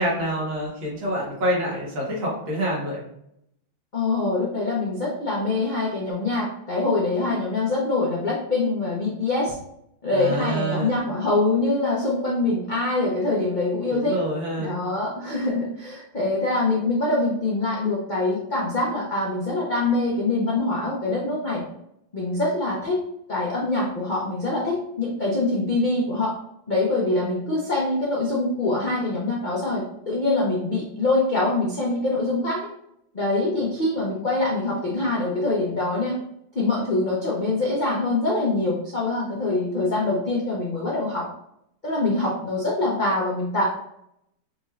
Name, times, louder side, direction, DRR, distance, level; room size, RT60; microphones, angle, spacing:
voice 1, 0.0-3.0 10.1-11.0 13.9-14.7, equal, 80° right, -4 dB, 2.2 m, -27 dB
voice 2, 3.9-9.6 10.0-14.2 14.6-21.6 22.1-23.0 23.3-26.3 26.7-32.7 33.1-36.1 36.5-41.3 41.8-43.6, left 2 dB, 70° left, -5 dB, 0.4 m, -24 dB
5.2 x 3.1 x 2.4 m, 0.76 s
omnidirectional pair, 2.1 m